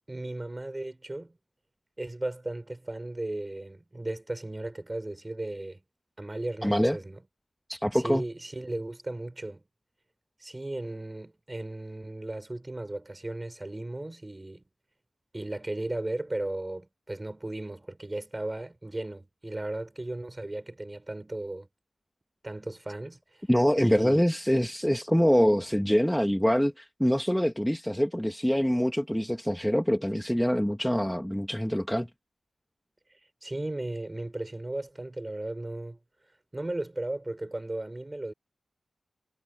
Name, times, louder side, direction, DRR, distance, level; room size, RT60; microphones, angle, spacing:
voice 1, 0.1-1.4 2.0-5.8 6.2-7.2 7.9-9.6 10.4-14.6 15.3-21.7 22.4-23.4 23.8-24.2 33.4-36.0 36.5-38.3, right 2 dB, 25° right, 4.3 m, -36 dB
voice 2, 6.6-7.0 7.7-8.2 23.5-32.1, equal, 5° left, 1.7 m, -25 dB
wide cardioid pair, 80°, 0 cm